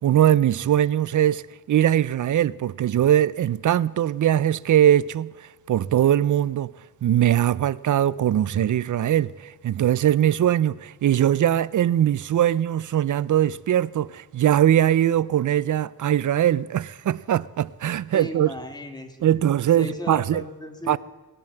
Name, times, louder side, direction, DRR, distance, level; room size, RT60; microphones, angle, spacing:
voice 1, 0.0-1.4 1.7-5.3 5.7-6.7 7.0-18.5 19.2-20.4 20.9-21.0, right 11 dB, 55° right, 0.5 m, -21 dB
voice 2, 18.1-19.3 19.8-21.0, left 1 dB, 10° left, 1.7 m, -36 dB
18.0 x 9.1 x 7.7 m
wide cardioid pair, 125°, 37 cm